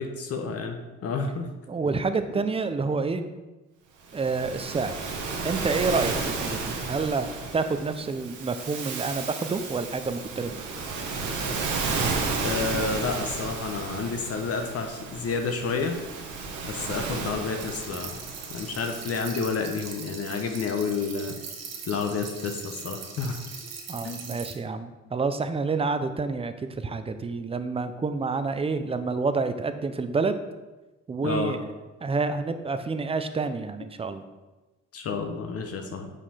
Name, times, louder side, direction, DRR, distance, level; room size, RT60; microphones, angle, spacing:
voice 1, 0.0-1.5 12.4-16.0 16.6-18.2 18.5-21.4 21.9-23.4 24.0-24.3 31.2-31.5 34.9-36.1, left 4 dB, 50° left, 4 dB, 0.8 m, -30 dB
voice 2, 1.7-3.2 4.1-4.9 5.4-7.3 7.5-10.6 23.9-30.4 31.1-31.6 32.0-34.2, right 4 dB, 20° right, 9 dB, 0.5 m, -28 dB
Waves surf, 4.1-19.6, right 4 dB, 80° right, 1.1 m, -33 dB
sound 1, 17.6-24.5, right 5 dB, 60° right, 1.2 m, -40 dB
5.6 x 5.1 x 4.2 m, 1.1 s
cardioid pair, 90°, 30 cm